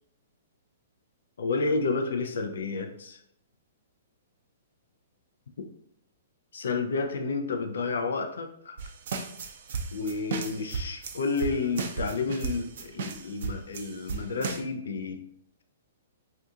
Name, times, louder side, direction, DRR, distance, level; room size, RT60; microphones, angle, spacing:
voice 1, 1.4-3.2 6.5-8.8 9.9-15.2, left 4 dB, 85° left, 6 dB, 0.4 m, -30 dB
sound 1, 8.8-14.6, right 5 dB, 60° right, 0.5 m, -35 dB
2.7 x 2.4 x 3.6 m, 0.69 s
hypercardioid pair, 150°, 0 cm